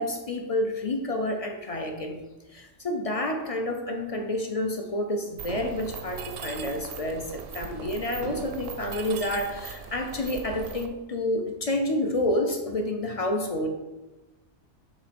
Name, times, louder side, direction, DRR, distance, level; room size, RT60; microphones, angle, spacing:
voice 1, 0.0-2.2 2.5-13.7, left 1 dB, 50° left, 3 dB, 0.4 m, -29 dB
Mechanisms, 5.4-10.9, right 6 dB, 65° right, 0.7 m, -39 dB
7.3 x 3.0 x 5.1 m, 1.1 s
omnidirectional pair, 1.3 m